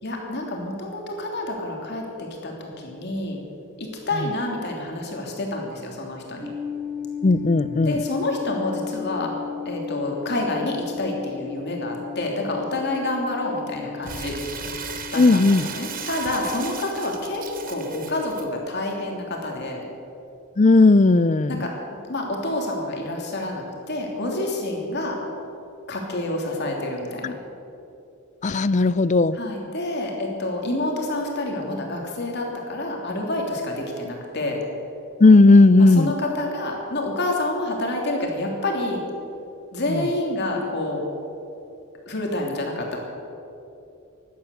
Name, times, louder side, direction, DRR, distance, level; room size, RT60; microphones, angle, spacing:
voice 1, 0.0-3.4 3.8-6.5 7.8-9.3 9.6-14.3 15.1-19.8 21.5-21.7 22.1-25.2 25.9-27.3 29.3-34.6 35.8-39.0 39.7-41.0 42.1-43.0, left 1 dB, 50° left, 0 dB, 3.0 m, -28 dB
sound 1, 6.4-19.9, left 7 dB, ahead, 0.8 m, -36 dB
voice 2, 7.2-8.0 15.2-15.7 20.6-21.6 27.2-27.3 28.4-29.4 35.2-36.1 39.9-40.0, left 3 dB, 35° left, 16 dB, 0.4 m, -15 dB
Crumpling crinkling, 14.0-18.4, right 6 dB, 40° right, 1.2 m, -36 dB
16.0 x 11.5 x 7.0 m, 2.7 s
head